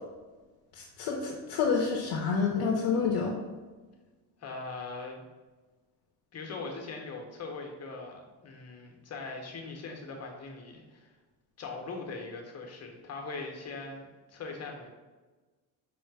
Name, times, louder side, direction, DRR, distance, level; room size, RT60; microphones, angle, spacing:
voice 1, 0.8-3.3, left 5 dB, 65° left, -2 dB, 0.7 m, -28 dB
voice 2, 4.4-5.2 6.3-11.1 11.6-14.9, left 3 dB, 35° left, 1 dB, 0.9 m, -41 dB
5.0 x 2.0 x 4.7 m, 1.3 s
cardioid pair, 110°, 43 cm